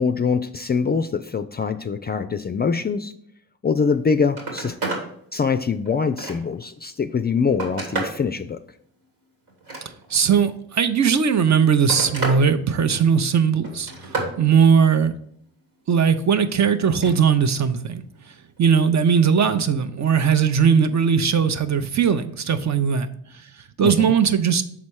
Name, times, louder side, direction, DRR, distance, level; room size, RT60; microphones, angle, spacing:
voice 1, 0.0-3.1 3.6-4.8 5.3-8.6 23.8-24.1, left 5 dB, 25° left, 0.4 m, -23 dB
Telephone, 3.8-4.0 4.3-5.1 5.6-6.6 7.2-8.2 9.5-10.3 11.3-12.4 12.8-13.2 13.6-14.4 16.8-17.2 18.6-18.7, right 3 dB, 80° right, 1.8 m, -31 dB
voice 2, 10.1-13.9 14.4-15.1 15.9-18.0 18.6-23.1 23.8-24.6, right 7 dB, 45° right, 0.6 m, -19 dB
6.0 x 4.2 x 4.7 m
supercardioid pair, 45°, 39 cm